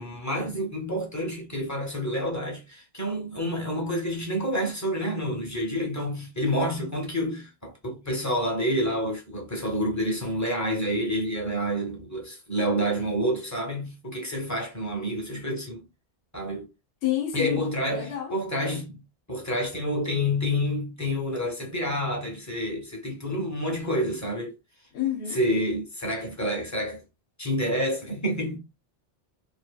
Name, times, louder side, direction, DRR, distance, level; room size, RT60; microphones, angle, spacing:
voice 1, 0.0-15.8 16.3-16.7 17.3-19.0 19.3-24.6 25.3-27.0 27.4-28.6, equal, 15° left, 0.9 m, -28 dB
voice 2, 17.0-18.3 24.9-25.4, left 12 dB, 80° left, 1.0 m, -29 dB
2.7 x 2.7 x 2.2 m
omnidirectional pair, 1.1 m